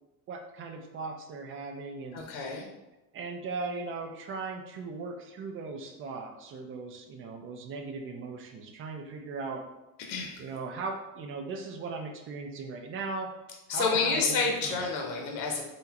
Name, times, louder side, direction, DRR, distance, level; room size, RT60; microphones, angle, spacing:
voice 1, 0.3-2.2 3.1-9.6 10.4-13.3 13.7-14.9, right 4 dB, 30° right, 4 dB, 0.4 m, -38 dB
voice 2, 2.1-2.7 10.1-10.4 13.7-15.6, left 4 dB, 80° left, 1 dB, 0.8 m, -29 dB
3.8 x 2.1 x 2.8 m, 0.98 s
supercardioid pair, 120°, 41 cm